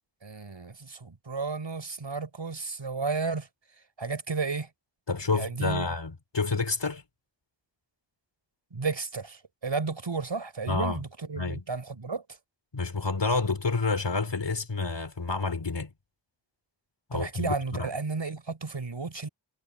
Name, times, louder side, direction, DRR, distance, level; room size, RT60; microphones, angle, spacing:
voice 1, 0.2-3.5 4.0-4.7 5.3-5.9 8.7-12.2 17.1-19.3, right 4 dB, 75° right, 5.3 m, -33 dB
voice 2, 5.1-7.0 10.7-11.0 11.4-11.6 12.7-15.9 17.1-17.9, left 3 dB, 70° left, 3.4 m, -29 dB
wide cardioid pair, 50°, 45 cm